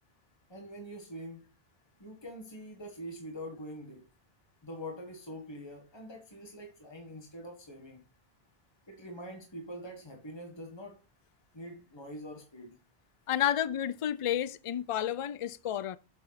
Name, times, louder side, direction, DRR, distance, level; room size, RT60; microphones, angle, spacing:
voice 1, 0.5-1.5 2.0-4.1 4.6-8.0 8.9-11.0 11.5-12.8, equal, 25° left, 1.7 m, -44 dB
voice 2, 13.3-16.0, left 10 dB, 50° left, 0.4 m, -31 dB
7.5 x 6.9 x 4.1 m
omnidirectional pair, 1.1 m